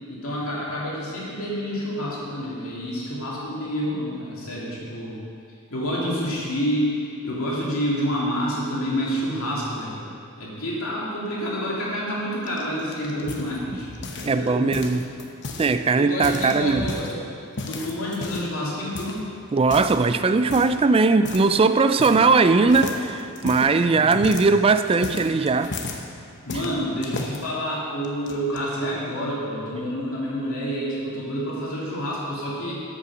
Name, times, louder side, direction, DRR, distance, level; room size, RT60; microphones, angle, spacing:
voice 1, 0.1-5.2 5.7-10.0 10.4-14.7 15.9-17.2 17.6-19.2 23.8-24.4 26.4-32.8, equal, 65° left, -6 dB, 2.7 m, -28 dB
sound 1, 12.5-14.4 14.7-15.7 16.1-17.1 17.6-18.6 18.9-19.2 19.6-20.0 20.5-20.8 21.2-21.5 21.8-22.4 22.7-26.0 26.5-27.4 28.0-28.6, left 3 dB, 50° left, 0.9 m, -34 dB
voice 2, 14.3-15.0 15.6-16.8 19.5-25.7, right 4 dB, 25° right, 11 dB, 0.3 m, -19 dB
8.4 x 7.9 x 6.2 m, 2.5 s
head